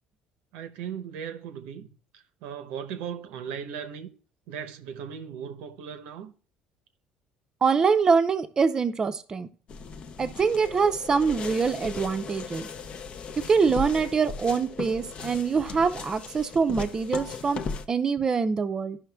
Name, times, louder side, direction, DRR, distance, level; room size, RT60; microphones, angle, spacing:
voice 1, 0.5-1.9 2.1-4.1 4.5-6.3, right 8 dB, 90° right, 0.8 m, -37 dB
voice 2, 7.6-9.5 10.2-12.7 13.5-17.6 17.9-19.0, right 5 dB, 25° right, 0.6 m, -24 dB
sound 1, 9.7-17.9, left 5 dB, 40° left, 0.5 m, -37 dB
14.0 x 5.7 x 2.3 m
cardioid pair, 140°, 3 cm